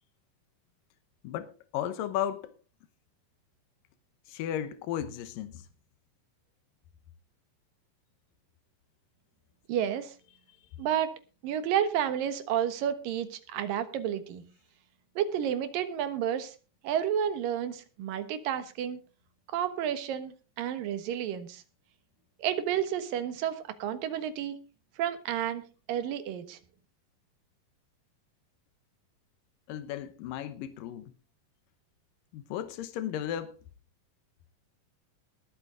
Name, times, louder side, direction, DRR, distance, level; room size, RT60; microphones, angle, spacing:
voice 1, 1.2-2.5 4.3-5.7 29.7-31.1 32.3-33.6, left 10 dB, 85° left, 2.7 m, -35 dB
voice 2, 9.7-10.1 10.8-11.1 11.4-14.4 15.2-16.6 16.8-19.0 19.5-21.6 22.4-24.6 25.0-26.6, right 9 dB, 85° right, 3.0 m, -31 dB
20.0 x 8.7 x 3.8 m
omnidirectional pair, 3.9 m